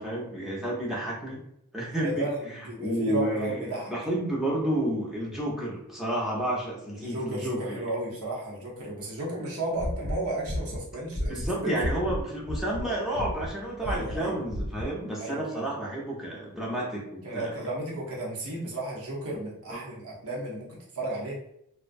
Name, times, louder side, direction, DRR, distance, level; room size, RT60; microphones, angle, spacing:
voice 1, 0.0-1.4 1.7-7.8 11.3-17.6 19.7-19.8, right 1 dB, ahead, -5 dB, 0.5 m, -31 dB
voice 2, 2.0-3.9 6.9-11.3 11.6-11.8 13.8-14.3 15.2-15.7 17.2-20.7 20.9-21.4, right 2 dB, 80° right, -4 dB, 0.8 m, -34 dB
sound 1, 9.7-12.2 12.5-12.9 13.1-13.5 13.8-14.2 14.5-14.9, left 1 dB, 75° left, 0.6 m, -32 dB
2.3 x 2.1 x 2.5 m, 0.76 s
head